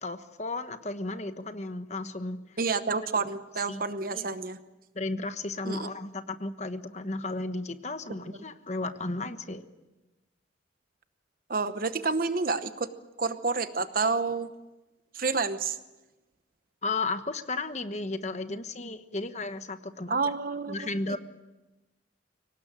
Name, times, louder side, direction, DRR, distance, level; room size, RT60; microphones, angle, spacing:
voice 1, 0.0-2.6 3.7-3.8 4.1-4.3 4.9-9.7 16.8-20.2 20.7-21.2, left 2 dB, 35° left, 9 dB, 1.2 m, -34 dB
voice 2, 2.6-4.6 5.6-5.9 11.5-12.9 13.2-14.5 15.1-15.8 20.1-21.2, right 4 dB, 45° right, 11 dB, 0.9 m, -29 dB
24.0 x 19.0 x 8.8 m, 1.1 s
head